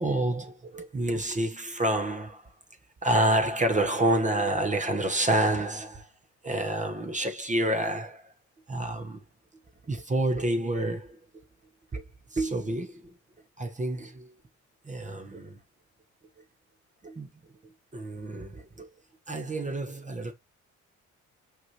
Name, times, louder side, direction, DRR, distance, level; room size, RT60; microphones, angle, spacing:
voice 1, 0.0-2.4 3.0-6.1 6.4-8.3 8.7-9.2 9.9-11.2 11.9-12.0 12.3-13.0 13.6-14.3 14.9-15.6 17.0-17.3 17.9-18.9 19.3-20.3, right 1 dB, 25° right, 1.2 m, -28 dB
5.9 x 5.6 x 3.0 m
cardioid pair, 90°, 30 cm